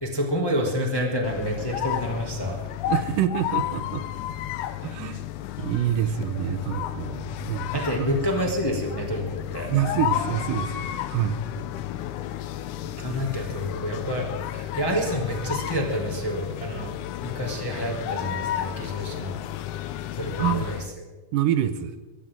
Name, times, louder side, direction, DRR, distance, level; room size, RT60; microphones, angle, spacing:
voice 1, 0.0-2.6 7.7-9.7 13.0-14.3 14.5-16.9 17.2-19.4 20.1-20.8, equal, 10° left, 0 dB, 1.7 m, -28 dB
sound 1, 1.2-20.9, left 12 dB, 75° left, 2.1 m, -32 dB
voice 2, 2.9-4.1 4.8-5.3 5.6-8.2 9.7-11.4 20.4-20.7 21.3-22.0, right 11 dB, 80° right, 10 dB, 2.4 m, -27 dB
23.0 x 15.5 x 3.8 m, 1.2 s
omnidirectional pair, 3.8 m